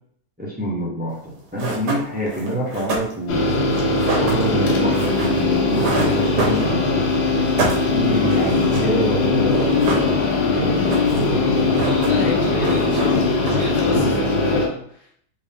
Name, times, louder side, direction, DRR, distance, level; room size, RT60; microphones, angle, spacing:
voice 1, 0.4-3.5 4.2-7.2 7.9-11.0, right 1 dB, 5° right, -5 dB, 0.8 m, -26 dB
sound 1, 1.2-1.3 1.6-7.0 7.3-8.9 9.2-9.3 9.5-10.4 10.7-11.3 11.6-12.3 12.6-13.8, right 2 dB, 70° right, 1.6 m, -28 dB
sound 2, 3.3-14.7, left 3 dB, 75° left, 1.6 m, -20 dB
voice 2, 11.8-13.2 13.4-15.2, left 4 dB, 60° left, -3 dB, 0.7 m, -30 dB
4.2 x 3.0 x 3.5 m, 0.66 s
omnidirectional pair, 1.9 m